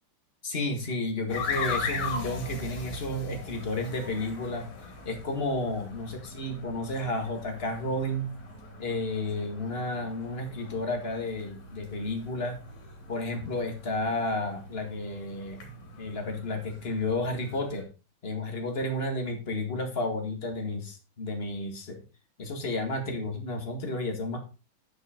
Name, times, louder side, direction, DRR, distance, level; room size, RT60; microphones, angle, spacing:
voice 1, 0.4-4.7 5.0-8.3 8.8-12.6 13.1-15.7 16.0-17.8 18.2-22.0 22.4-24.4, left 2 dB, 35° left, 4 dB, 1.0 m, -32 dB
sound 1, 1.3-17.8, left 3 dB, 55° left, 3.8 m, -40 dB
9.8 x 6.2 x 5.0 m, 0.33 s
omnidirectional pair, 4.0 m